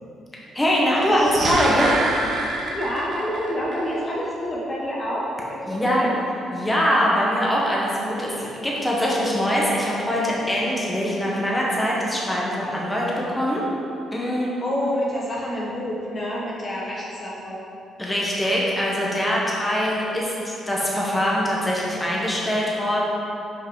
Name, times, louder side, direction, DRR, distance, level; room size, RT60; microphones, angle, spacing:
voice 1, 0.5-1.9 5.7-6.1 6.5-13.6 14.1-14.5 18.0-23.0, equal, 10° left, -5 dB, 1.3 m, -23 dB
sound 1, 1.0-3.4 3.7-3.8, right 2 dB, 50° right, 1.2 m, -26 dB
voice 2, 2.7-6.1 14.6-17.6, equal, 35° left, -5 dB, 1.2 m, -28 dB
5.7 x 4.8 x 4.9 m, 2.7 s
cardioid pair, 90°, 0 cm